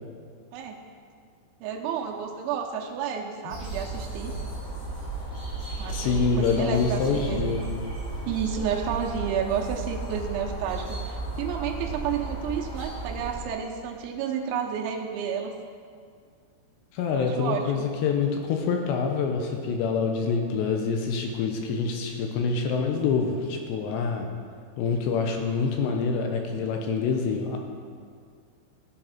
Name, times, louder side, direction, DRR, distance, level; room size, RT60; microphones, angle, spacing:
voice 1, 1.6-4.4 5.8-7.5 8.3-15.5 17.2-17.9, right 7 dB, 80° right, 2 dB, 3.1 m, -31 dB
sound 1, 3.5-13.4, right 3 dB, 30° left, 4.3 m, -34 dB
voice 2, 5.9-7.6 16.9-24.3 24.8-27.6, left 5 dB, 80° left, 3 dB, 2.7 m, -26 dB
14.5 x 7.6 x 5.9 m, 2.1 s
omnidirectional pair, 5.7 m